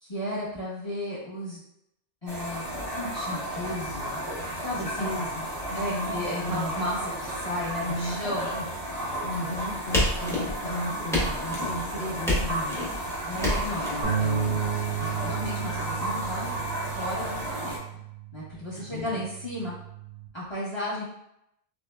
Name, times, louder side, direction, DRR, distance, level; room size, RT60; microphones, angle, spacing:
voice 1, 0.0-1.6 2.2-4.2 4.6-5.1 5.7-8.5 13.3-14.6 15.0-16.5 17.0-17.8 18.3-19.8 20.3-21.0, left 1 dB, 30° left, -7 dB, 0.7 m, -34 dB
sound 1, 2.3-17.8, right 1 dB, 20° right, 0.7 m, -33 dB
voice 2, 4.7-6.8 7.6-8.2 8.5-8.7 9.2-12.8 18.8-19.2, left 1 dB, 80° left, 1 dB, 0.9 m, -35 dB
sound 2, 9.9-10.7 11.1-11.7 12.3-12.9 13.4-13.9, left 1 dB, 5° left, 0.3 m, -27 dB
sound 3, 14.0-20.3, right 8 dB, 55° right, 0.6 m, -33 dB
3.1 x 2.1 x 2.2 m, 0.78 s
omnidirectional pair, 1.2 m